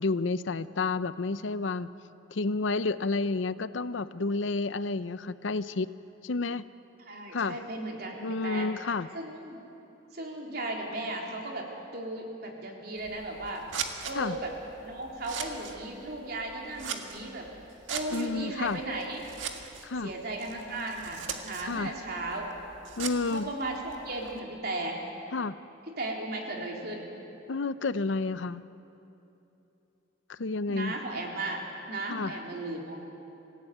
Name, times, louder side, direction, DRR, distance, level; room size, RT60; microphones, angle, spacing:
voice 1, 0.0-1.9 2.3-5.9 6.2-6.7 7.3-7.6 8.2-9.1 14.2-14.4 18.1-18.8 19.8-20.1 21.6-21.9 23.0-23.5 25.3-25.6 27.5-28.6 30.3-30.9 32.1-32.3, left 3 dB, 80° left, 14 dB, 0.7 m, -30 dB
voice 2, 7.1-8.7 9.1-9.7 10.1-13.7 14.0-14.5 14.8-17.5 17.9-19.2 20.0-22.5 23.3-25.0 25.9-27.1 30.7-31.6 31.9-33.0, right 2 dB, 55° right, 0 dB, 3.5 m, -36 dB
Scissors, 13.0-24.4, right 6 dB, 90° right, 1.8 m, -41 dB
26.0 x 16.5 x 9.2 m, 2.9 s
head